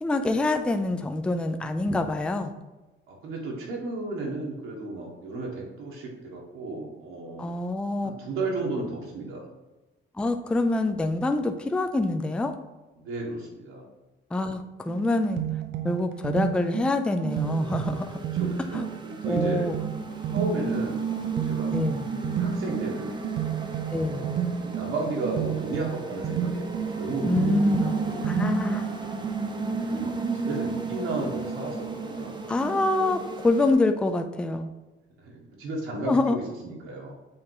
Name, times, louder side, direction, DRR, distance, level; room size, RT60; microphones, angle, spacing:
voice 1, 0.0-2.5 7.4-8.1 10.2-12.5 14.3-15.4 15.8-18.2 18.7-18.9 19.2-19.8 21.7-22.1 23.9-24.3 27.2-27.9 28.2-28.9 32.5-34.7 36.1-36.4, left 2 dB, 5° left, 7 dB, 0.3 m, -25 dB
voice 2, 3.1-7.6 8.0-9.5 13.0-13.9 18.3-19.7 20.3-21.7 22.3-23.3 24.0-26.7 26.9-28.3 29.9-32.4 35.2-37.1, right 2 dB, 85° right, -2 dB, 1.7 m, -34 dB
sound 1, 14.9-29.7, right 10 dB, 60° right, 0.6 m, -32 dB
sound 2, 17.3-33.7, right 3 dB, 20° right, 0.7 m, -33 dB
7.3 x 2.9 x 4.7 m, 1.1 s
cardioid pair, 140°, 20 cm